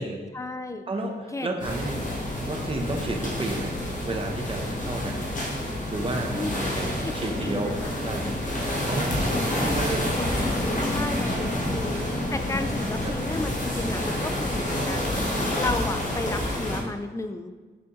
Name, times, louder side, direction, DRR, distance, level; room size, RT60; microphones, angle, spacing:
voice 1, 0.3-0.9 1.3-1.5 6.3-6.5 7.0-8.0 9.1-9.5 10.0-12.0 12.3-15.3 15.6-17.5, left 2 dB, 15° left, 8 dB, 0.4 m, -33 dB
voice 2, 0.9-2.1 2.4-3.7 4.1-5.3 5.9-7.8 8.0-8.3 8.8-10.1 10.7-11.8 13.0-13.1, right 2 dB, 30° right, 2 dB, 0.7 m, -32 dB
sound 1, 1.6-16.8, left 1 dB, 45° left, 1.2 m, -28 dB
7.0 x 6.2 x 3.0 m, 1.3 s
wide cardioid pair, 175°, 19 cm